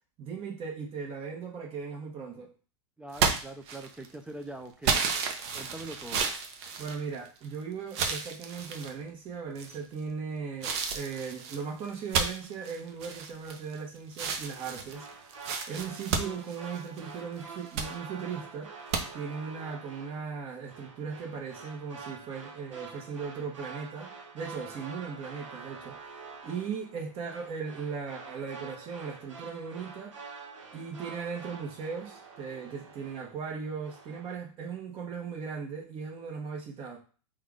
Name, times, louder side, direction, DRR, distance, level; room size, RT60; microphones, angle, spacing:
voice 1, 0.2-2.5 6.8-15.1 15.7-18.7 19.1-30.2 30.7-37.0, right 6 dB, 35° right, 1.3 m, -38 dB
voice 2, 3.0-5.0 5.5-6.2, right 2 dB, 5° right, 0.4 m, -42 dB
sound 1, 3.1-4.1 4.8-7.5 7.9-8.9 9.5-10.0 10.6-13.8 14.1-17.1 17.5-17.9 18.9-19.0, right 5 dB, 60° right, 0.8 m, -32 dB
sound 2, 14.4-33.5 33.8-34.3, right 4 dB, 80° right, 1.1 m, -47 dB
3.5 x 2.5 x 3.6 m
hypercardioid pair, 100°, 16 cm